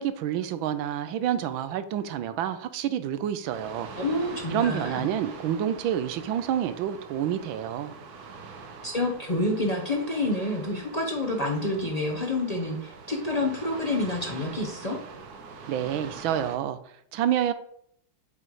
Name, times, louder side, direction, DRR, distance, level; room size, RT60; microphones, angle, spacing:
voice 1, 0.0-3.9 4.5-7.9 15.7-16.8 17.1-17.5, right 10 dB, 75° right, 12 dB, 1.3 m, -28 dB
sound 1, 3.5-16.6, right 4 dB, 55° right, 1.3 m, -44 dB
voice 2, 4.0-5.1 8.8-15.0, left 2 dB, 35° left, -1 dB, 0.6 m, -28 dB
7.7 x 4.0 x 4.7 m, 0.67 s
omnidirectional pair, 2.3 m